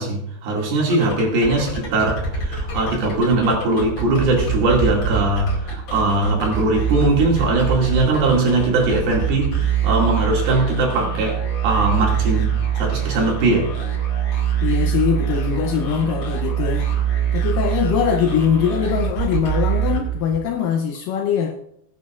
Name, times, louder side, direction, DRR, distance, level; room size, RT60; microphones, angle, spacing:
voice 1, 0.0-13.7, right 2 dB, 65° right, 4.2 m, -20 dB
sound 1, 0.9-20.5, right 8 dB, 35° left, 2.3 m, -24 dB
voice 2, 14.6-16.9 17.3-21.6, left 8 dB, 85° left, 1.9 m, -22 dB
21.5 x 9.2 x 2.5 m
omnidirectional pair, 4.8 m